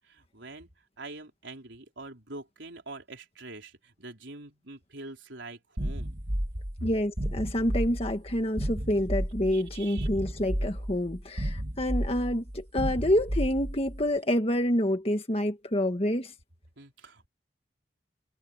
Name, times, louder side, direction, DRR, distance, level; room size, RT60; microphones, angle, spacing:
voice 1, 0.0-6.2 6.8-6.9 9.5-10.1 16.8-17.3, right 2 dB, 80° right, 4.1 m, -44 dB
sound 1, 5.8-14.0, equal, 45° right, 2.3 m, -32 dB
voice 2, 6.8-16.3, left 1 dB, 35° left, 1.7 m, -28 dB
head